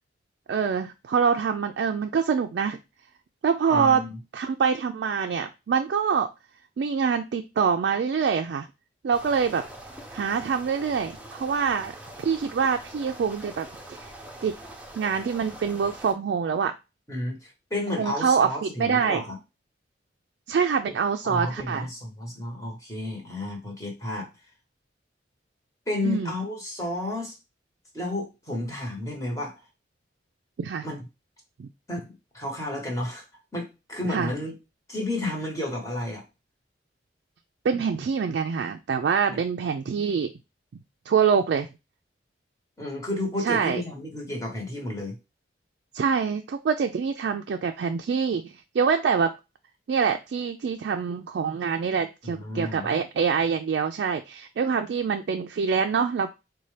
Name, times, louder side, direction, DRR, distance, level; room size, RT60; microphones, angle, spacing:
voice 1, 0.5-2.8 3.4-4.0 4.3-6.3 6.8-8.7 9.0-9.6 10.1-11.9 12.2-14.1 14.4-14.5 15.0-16.7 18.0-19.2 20.5-21.9 26.0-26.3 30.6-30.9 31.6-31.7 34.1-34.3 37.6-40.3 41.1-41.7 43.4-43.8 45.9-49.3 49.9-56.3, right 6 dB, 65° right, 0.3 m, -25 dB
voice 2, 3.7-4.2 17.1-19.4 21.2-24.3 25.9-27.4 27.9-29.6 30.8-31.1 31.9-33.2 33.5-34.5 34.9-36.2 42.8-45.2 52.2-52.9, left 1 dB, 20° left, 1.0 m, -32 dB
sound 1, 9.1-16.1, right 1 dB, 10° right, 0.6 m, -44 dB
4.1 x 2.2 x 3.2 m
head